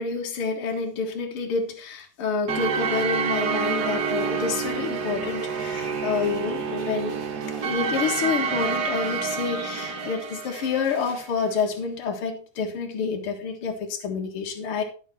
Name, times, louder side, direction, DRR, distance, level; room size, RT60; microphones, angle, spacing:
voice 1, 0.0-7.2 7.5-14.8, left 5 dB, 55° left, 2.4 m, -28 dB
sound 1, 2.5-11.3, right 6 dB, 65° right, 0.9 m, -28 dB
sound 2, 4.4-10.1, right 2 dB, 25° right, 0.6 m, -41 dB
12.0 x 6.7 x 4.2 m
omnidirectional pair, 3.3 m